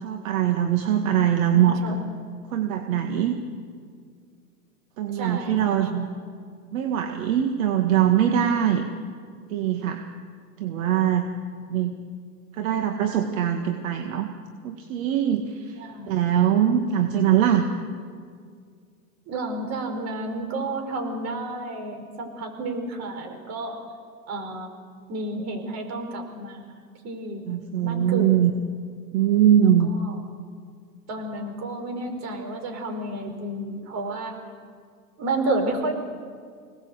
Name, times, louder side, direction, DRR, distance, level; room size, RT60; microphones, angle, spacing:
voice 1, 0.0-2.0 2.5-3.4 5.0-6.1 6.7-8.9 9.5-10.0 10.6-11.3 11.7-12.0 12.5-14.3 14.6-15.8 16.1-17.7 27.5-28.5 29.1-29.9, right 10 dB, 55° right, 5 dB, 2.0 m, -22 dB
voice 2, 1.5-1.9 5.1-6.0 15.8-16.3 19.3-23.8 24.3-24.7 25.1-26.8 27.0-27.4 27.8-28.4 29.5-29.7 30.0-30.2 31.1-34.4 35.2-35.9, right 2 dB, 35° right, 5 dB, 4.8 m, -31 dB
25.5 x 19.0 x 8.1 m, 2.1 s
hypercardioid pair, 125°, 48 cm